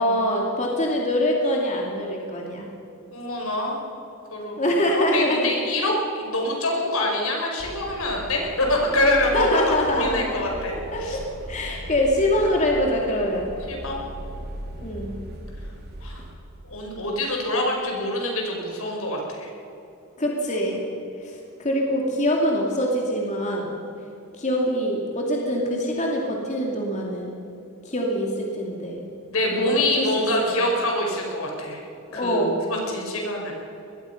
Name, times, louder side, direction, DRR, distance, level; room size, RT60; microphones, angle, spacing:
voice 1, 0.0-2.7 4.6-5.5 9.3-10.5 10.7-13.5 14.8-15.2 20.2-20.8 21.2-23.7 24.3-27.3 27.8-29.0 29.5-29.7 30.0-30.2 30.6-30.7 32.1-32.6, equal, 35° left, -1 dB, 2.5 m, -24 dB
voice 2, 3.1-3.8 4.3-9.5 9.9-10.7 11.0-11.2 13.7-14.0 16.0-16.2 16.6-19.5 29.3-31.8 32.1-33.5, left 1 dB, 75° left, 0 dB, 5.3 m, -25 dB
sound 1, 7.6-16.3, equal, 50° right, 3.2 m, -38 dB
24.0 x 20.5 x 5.9 m, 2.9 s
head